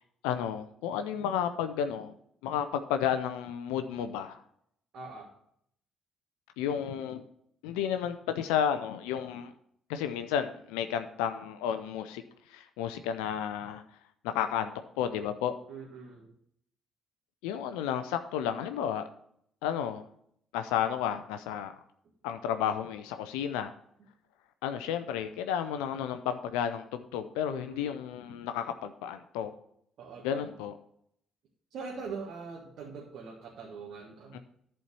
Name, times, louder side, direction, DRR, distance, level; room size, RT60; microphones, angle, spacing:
voice 1, 0.2-2.1 2.4-4.4 6.6-7.2 7.6-9.5 9.9-12.2 12.5-13.8 14.2-15.5 17.4-19.1 19.6-20.0 20.5-21.7 22.2-23.7 24.6-29.5 30.2-30.7 34.3-34.4, left 9 dB, 75° left, 9 dB, 0.5 m, -32 dB
voice 2, 4.9-5.3 15.7-16.3 27.5-28.0 30.0-30.6 31.7-34.4, right 5 dB, 60° right, -3 dB, 1.6 m, -43 dB
11.0 x 4.4 x 6.8 m, 0.70 s
hypercardioid pair, 45°, 0 cm